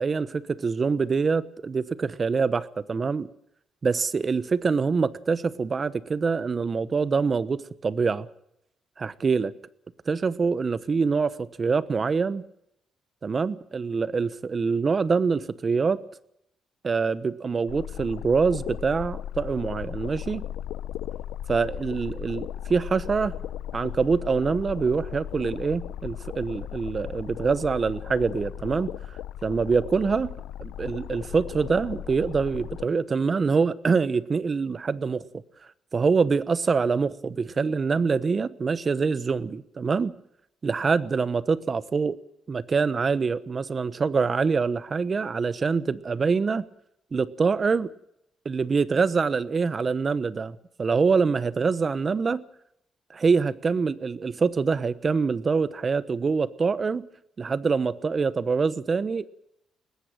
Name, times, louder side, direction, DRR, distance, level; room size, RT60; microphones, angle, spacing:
voice 1, 0.0-3.3 3.8-8.3 9.0-9.5 10.1-12.5 13.2-16.0 16.8-20.5 21.5-23.4 23.7-28.9 29.4-30.3 30.6-35.2 35.9-40.1 40.6-42.2 42.5-46.7 47.1-47.9 48.4-52.4 53.1-57.1 57.4-59.3, right 5 dB, 40° right, 1.0 m, -25 dB
sound 1, 17.7-32.8, left 11 dB, 90° left, 0.8 m, -36 dB
20.0 x 15.0 x 9.1 m
cardioid pair, 75°, 0 cm